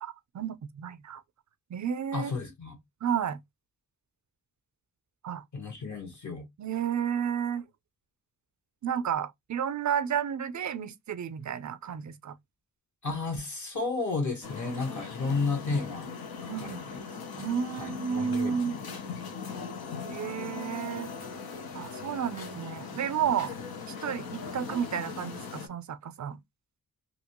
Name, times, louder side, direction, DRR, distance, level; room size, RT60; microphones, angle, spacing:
voice 1, 0.0-1.2 1.7-2.3 3.0-3.4 5.2-5.4 6.6-7.6 8.8-12.3 16.5-16.8 17.4-18.8 20.0-21.1 21.7-23.5 24.0-26.4, right 8 dB, 55° right, 0.5 m, -32 dB
voice 2, 2.1-2.8 5.5-6.5 13.0-16.1 16.4-17.0 17.2-17.5 17.8-18.8, left 3 dB, 55° left, 1.2 m, -33 dB
sound 1, 14.4-25.7, left 5 dB, 85° left, 0.8 m, -40 dB
2.9 x 2.7 x 2.9 m
wide cardioid pair, 110°, 36 cm